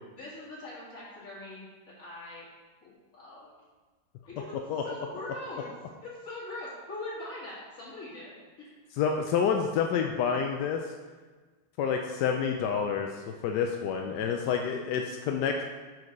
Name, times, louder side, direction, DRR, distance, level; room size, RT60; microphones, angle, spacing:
voice 1, 0.1-1.6 2.0-2.5 2.8-3.5 4.2-5.7 6.0-8.8, left 2 dB, 45° left, -8 dB, 2.8 m, -42 dB
voice 2, 9.0-10.8 11.8-15.6, left 7 dB, 75° left, 3 dB, 1.0 m, -28 dB
6.1 x 4.8 x 5.2 m, 1.4 s
omnidirectional pair, 2.2 m